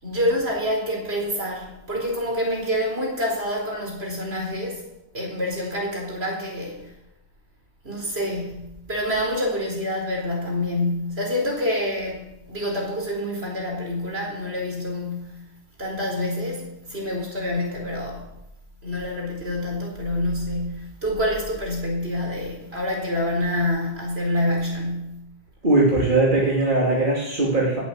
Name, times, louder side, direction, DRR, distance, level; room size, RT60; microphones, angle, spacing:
voice 1, 0.0-4.8 5.1-6.9 7.8-8.6 8.9-15.4 15.8-18.2 18.8-25.2, left 1 dB, 75° right, 0 dB, 4.7 m, -27 dB
voice 2, 25.6-27.8, right 2 dB, 50° right, -3 dB, 2.9 m, -20 dB
18.5 x 8.4 x 7.6 m, 0.90 s
omnidirectional pair, 1.1 m